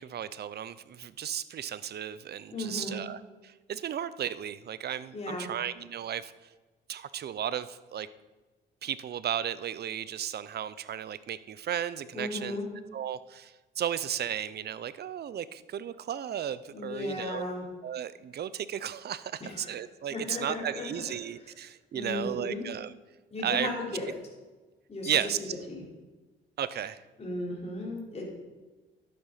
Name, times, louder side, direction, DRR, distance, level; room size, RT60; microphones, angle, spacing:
voice 1, 0.0-6.3 6.9-8.1 8.8-12.6 12.9-17.5 17.8-22.9 23.4-23.7 25.0-25.5 26.6-27.0, right 9 dB, 55° right, 16 dB, 0.7 m, -34 dB
voice 2, 2.5-3.0 5.1-5.5 12.1-12.7 16.7-17.7 19.4-19.7 20.1-21.0 21.9-22.7 23.3-24.1 24.9-25.2 25.7-25.8 27.2-28.3, left 2 dB, 30° left, -3 dB, 4.6 m, -35 dB
12.0 x 8.7 x 5.7 m, 1.2 s
cardioid pair, 90°, 20 cm